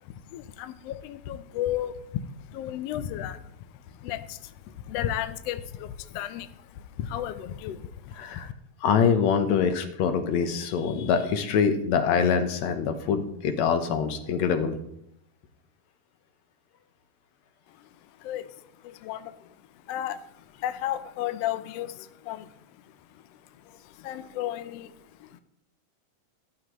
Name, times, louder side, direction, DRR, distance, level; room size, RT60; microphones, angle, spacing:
voice 1, 0.0-3.6 3.9-8.5 17.8-17.9 18.2-18.5 18.8-19.5 19.8-22.5 22.8-25.4, left 11 dB, 90° left, 11 dB, 1.4 m, -34 dB
voice 2, 8.2-8.5 8.8-14.8, left 6 dB, 70° left, 7 dB, 2.1 m, -24 dB
13.0 x 13.0 x 3.1 m, 0.77 s
omnidirectional pair, 3.6 m